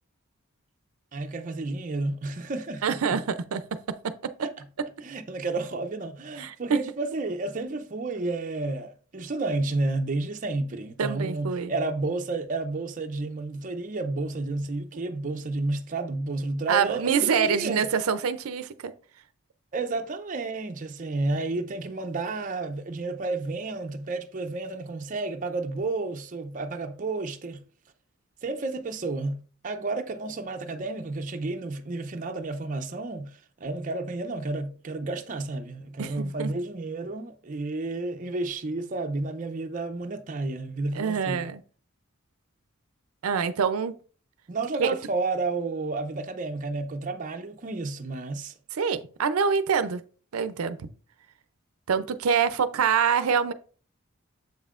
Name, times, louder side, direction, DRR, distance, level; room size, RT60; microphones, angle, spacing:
voice 1, 1.1-3.2 4.4-4.6 5.0-17.8 19.7-27.6 28.4-41.5 44.5-48.5, right 3 dB, 40° right, 0.5 m, -31 dB
voice 2, 2.8-3.6 4.0-4.1 6.4-6.8 11.0-11.7 16.7-18.9 36.0-36.5 40.9-41.6 43.2-43.9 44.8-44.9 48.8-50.0 50.3-50.8 51.9-53.5, right 6 dB, 90° right, 0.5 m, -25 dB
7.3 x 5.4 x 2.4 m
head